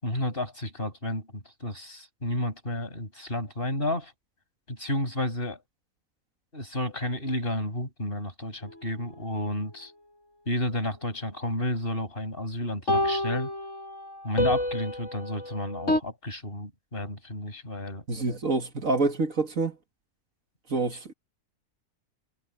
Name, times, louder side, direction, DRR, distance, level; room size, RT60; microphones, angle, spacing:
voice 1, 0.0-4.1 4.7-5.6 6.5-9.9 10.5-13.5 14.2-18.0, left 1 dB, 40° left, 7.5 m, -31 dB
sound 1, 8.6-8.7 12.9-16.0, left 1 dB, 55° left, 7.5 m, -28 dB
voice 2, 18.1-19.8 20.7-21.1, right 3 dB, 65° right, 2.3 m, -27 dB
omnidirectional pair, 1.5 m